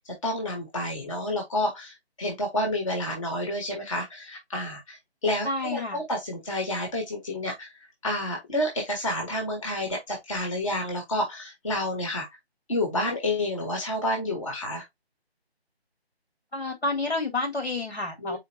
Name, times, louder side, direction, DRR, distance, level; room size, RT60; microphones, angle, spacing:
voice 1, 0.2-5.0 5.2-7.7 8.0-12.3 12.7-14.8 18.2-18.4, left 1 dB, 30° left, 1.3 m, -29 dB
voice 2, 5.4-6.0 16.5-18.4, left 2 dB, 80° left, 2.6 m, -29 dB
4.5 x 3.3 x 2.9 m
figure-of-eight pair, 155°, 33 cm